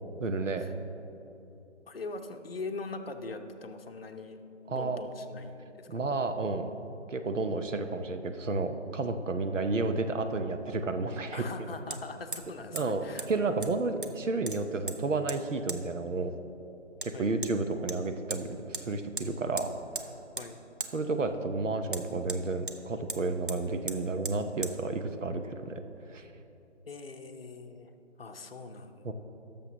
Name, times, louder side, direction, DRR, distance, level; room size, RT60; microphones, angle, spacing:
voice 1, 0.2-0.6 4.7-5.0 5.9-6.7 7.1-11.4 12.7-16.3 17.0-19.7 20.9-25.8 26.1-26.3 29.0-29.1, right 3 dB, 85° right, 8 dB, 0.8 m, -31 dB
voice 2, 1.9-4.4 4.7-6.0 11.3-13.5 17.1-17.3 20.4-20.6 26.9-27.9 28.2-29.1, left 3 dB, 50° left, 6 dB, 0.7 m, -42 dB
Hammer, 11.9-12.0 12.3-12.5 12.8-12.9 13.2-13.3 13.6-14.2 14.5-15.0 15.3-15.4 15.7-15.8 17.0-17.1 17.4-17.5 17.9-18.4 18.7-18.9 19.2-19.3 19.6-20.1 20.4-20.5 20.8-20.9 21.9-22.8 23.1-23.2 23.5-23.6 23.9-24.0 24.2-24.4 24.6-24.7, right 3 dB, 45° right, 0.5 m, -37 dB
16.0 x 6.8 x 3.0 m, 2.9 s
figure-of-eight pair, 170°, 37 cm